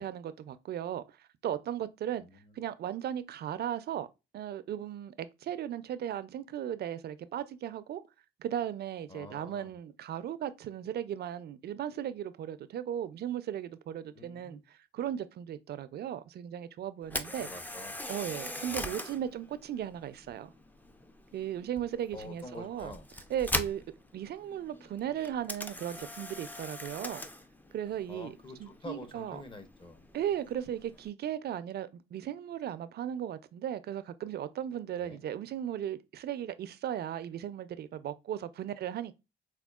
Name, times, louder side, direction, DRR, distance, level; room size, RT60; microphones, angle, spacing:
voice 1, 0.0-2.3 2.5-4.1 4.3-8.0 8.4-17.5 18.1-20.5 21.3-22.9 23.3-23.8 24.1-27.3 27.7-29.4 30.1-39.1, right 10 dB, 55° right, 0.4 m, -36 dB
voice 2, 2.2-2.6 9.1-9.7 14.1-14.6 17.4-18.0 18.7-19.0 22.1-23.1 28.1-30.1 34.9-35.2, left 2 dB, 25° left, 0.8 m, -47 dB
Camera, 17.0-31.1, left 1 dB, 10° left, 0.4 m, -42 dB
4.3 x 2.3 x 2.3 m
cardioid pair, 90°, 20 cm